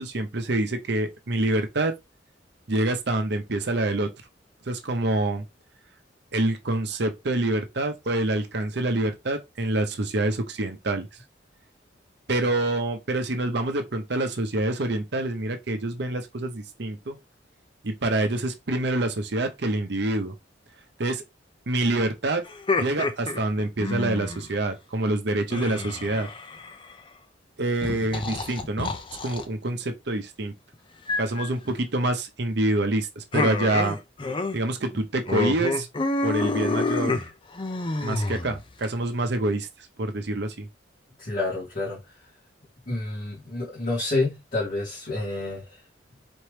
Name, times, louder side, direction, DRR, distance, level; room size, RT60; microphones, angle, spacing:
voice 1, 0.0-1.9 2.7-4.1 4.7-5.4 6.3-11.1 12.3-17.2 17.8-20.3 21.0-21.2 21.7-22.4 22.8-26.3 27.6-28.9 29.2-30.5 31.2-34.0 34.5-35.9 36.2-37.2 38.0-39.7 40.0-40.7, right 2 dB, 65° right, 0.8 m, -26 dB
sound 1, 22.5-24.5 25.5-26.9 27.8-29.4 31.1-31.5 33.3-34.6 34.8-35.0 35.3-38.9, left 3 dB, 30° left, 0.5 m, -28 dB
voice 2, 41.2-42.0 42.9-45.8, left 2 dB, 45° left, 2.1 m, -29 dB
4.4 x 3.0 x 3.3 m
head